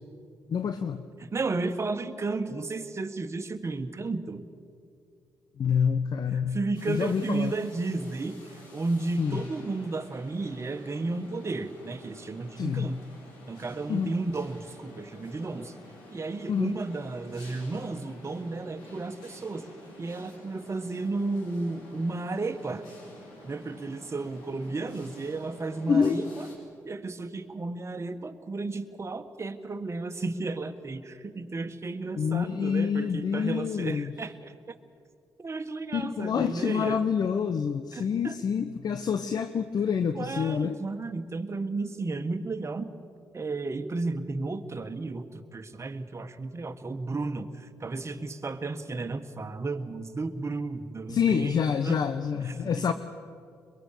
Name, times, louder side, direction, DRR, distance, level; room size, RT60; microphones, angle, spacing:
voice 1, 0.5-1.0 5.6-6.6 6.9-7.5 9.2-9.4 12.6-12.9 13.9-14.1 16.5-16.7 25.9-26.2 32.2-34.1 35.9-40.8 51.1-52.9, left 7 dB, 55° left, 10 dB, 0.9 m, -27 dB
voice 2, 1.2-4.5 6.5-13.0 13.5-15.7 16.1-19.7 20.0-22.8 23.4-26.5 26.8-34.8 35.4-37.0 37.9-38.4 40.1-42.9 43.3-52.0 52.4-52.6, right 3 dB, 35° right, 8 dB, 1.7 m, -33 dB
sound 1, 6.7-26.5, left 1 dB, 85° left, 4.7 m, -50 dB
23.0 x 22.0 x 6.9 m, 2.4 s
hypercardioid pair, 50°, 8 cm